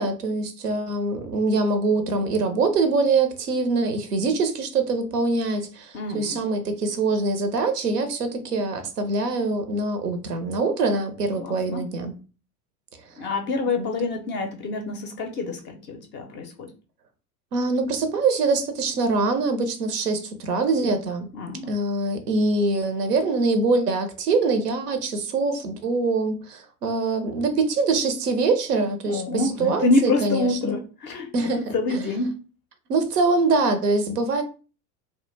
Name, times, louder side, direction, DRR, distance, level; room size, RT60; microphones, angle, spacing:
voice 1, 0.0-12.1 13.8-13.9 17.5-21.3 21.7-29.2 29.6-30.8 31.3-31.7 32.9-34.4, right 3 dB, 90° right, 0.6 m, -24 dB
voice 2, 5.9-6.4 11.4-11.9 13.2-16.7 21.3-21.7 29.1-32.4, left 2 dB, 25° left, 0.4 m, -26 dB
2.1 x 2.1 x 3.0 m
hypercardioid pair, 80°, 46 cm